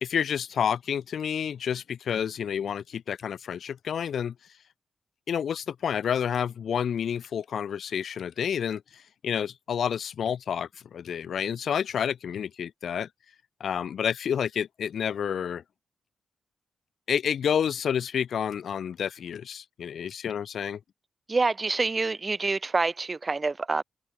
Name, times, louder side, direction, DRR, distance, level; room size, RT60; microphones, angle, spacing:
voice 1, 0.0-4.3 5.3-8.8 9.2-13.1 13.6-15.6 17.1-20.8, left 8 dB, 70° left, 0.6 m, -29 dB
voice 2, 21.3-23.8, right 3 dB, 30° right, 0.9 m, -26 dB
cardioid pair, 105°, 0 cm